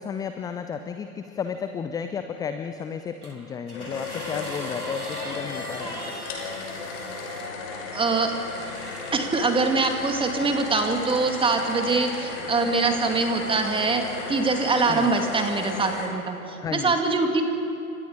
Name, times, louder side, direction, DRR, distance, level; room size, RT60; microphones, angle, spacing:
voice 1, 0.0-6.0 14.9-15.1 16.6-16.9, left 6 dB, 10° left, 8 dB, 0.5 m, -33 dB
sound 1, 3.2-7.5 8.4-9.4 10.3-10.5, right 1 dB, 90° right, 2.6 m, -40 dB
sound 2, 3.7-16.1, left 3 dB, 50° left, 5.6 m, -35 dB
voice 2, 7.9-8.3 9.1-17.4, right 3 dB, 10° right, 4 dB, 2.5 m, -24 dB
30.0 x 25.5 x 5.1 m, 2.7 s
figure-of-eight pair, 95°, 44 cm